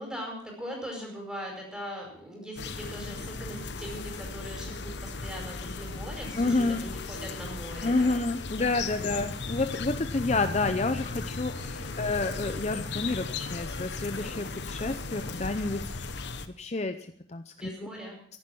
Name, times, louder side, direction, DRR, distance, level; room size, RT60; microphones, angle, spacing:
voice 1, 0.0-8.3 9.0-9.3 11.6-12.1 17.6-18.2, equal, 5° right, 0 dB, 5.2 m, -40 dB
sound 1, 2.6-16.5, left 3 dB, 70° left, 1.0 m, -36 dB
voice 2, 6.4-6.8 7.8-17.0 17.3-17.7, left 3 dB, 35° left, 8 dB, 0.6 m, -29 dB
14.0 x 11.5 x 6.2 m, 0.63 s
head